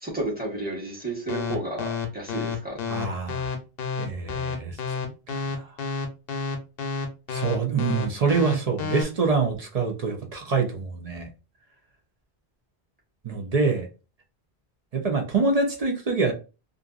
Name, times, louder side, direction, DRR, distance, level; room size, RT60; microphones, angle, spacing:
voice 1, 0.0-2.8, right 2 dB, 10° right, -4 dB, 1.0 m, -32 dB
sound 1, 1.3-9.0, left 5 dB, 70° left, 0.8 m, -29 dB
voice 2, 2.9-3.5 4.0-5.7 7.3-11.3 13.2-13.9 14.9-16.3, right 4 dB, 45° right, 2 dB, 0.5 m, -26 dB
2.5 x 2.5 x 2.3 m, 0.31 s
omnidirectional pair, 1.1 m